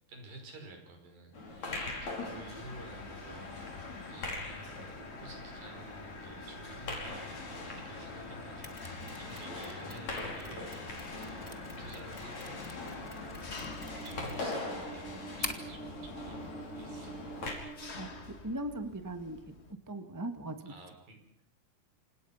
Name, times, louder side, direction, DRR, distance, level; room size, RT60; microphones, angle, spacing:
voice 1, 0.1-12.8 13.4-17.2 20.7-21.4, right 2 dB, 70° right, 4 dB, 6.9 m, -51 dB
sound 1, 1.3-17.5, left 2 dB, 50° left, 6.3 m, -42 dB
Mechanisms, 1.7-19.7, left 1 dB, 75° left, 0.6 m, -48 dB
Mechanisms 2, 8.6-15.8, left 2 dB, 15° left, 1.4 m, -47 dB
voice 2, 18.0-19.5 19.9-20.7, right 1 dB, 15° right, 8 dB, 0.7 m, -39 dB
28.5 x 26.5 x 5.9 m, 0.64 s
omnidirectional pair, 4.2 m